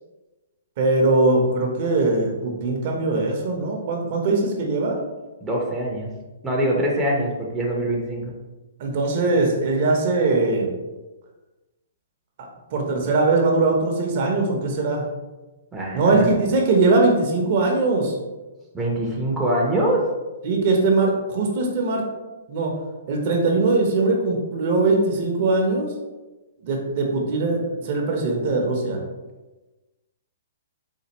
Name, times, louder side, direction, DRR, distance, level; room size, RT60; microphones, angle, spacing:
voice 1, 0.8-5.0 8.8-10.7 12.4-15.1 15.9-18.1 20.4-22.1 22.5-22.7 23.1-25.9 26.6-29.0, right 3 dB, 50° right, 1 dB, 0.7 m, -21 dB
voice 2, 5.4-6.1 6.4-8.3 15.7-16.3 18.7-20.0, right 1 dB, 10° right, -3 dB, 0.7 m, -24 dB
4.3 x 2.3 x 2.9 m, 1.1 s
hypercardioid pair, 130°, 0 cm